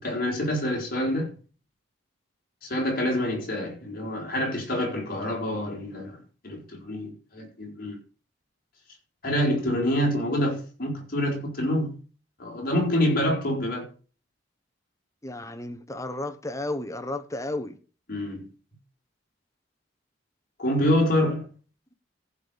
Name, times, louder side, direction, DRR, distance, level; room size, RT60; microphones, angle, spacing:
voice 1, 0.0-1.3 2.6-6.2 6.4-8.0 9.2-12.0 12.4-13.9 18.1-18.5 20.6-21.5, left 1 dB, 50° left, 4.6 m, -26 dB
voice 2, 15.2-17.8, left 2 dB, 15° left, 1.1 m, -33 dB
14.5 x 5.2 x 7.1 m
head